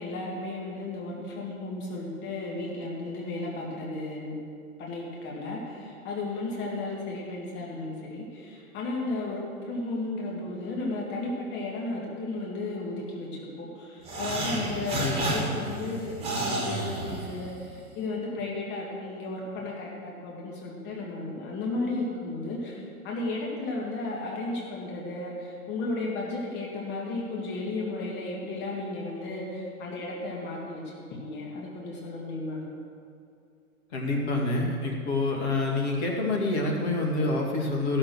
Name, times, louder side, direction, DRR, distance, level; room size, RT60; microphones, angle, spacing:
voice 1, 0.0-4.3 4.8-30.8 31.1-32.6, left 2 dB, 25° left, -2 dB, 2.0 m, -34 dB
sound 1, 14.0-17.8, right 2 dB, 15° right, 2.4 m, -31 dB
voice 2, 14.9-15.3 33.9-38.0, left 2 dB, 45° left, -1 dB, 2.1 m, -27 dB
14.5 x 6.6 x 6.3 m, 2.4 s
figure-of-eight pair, 110°, 43 cm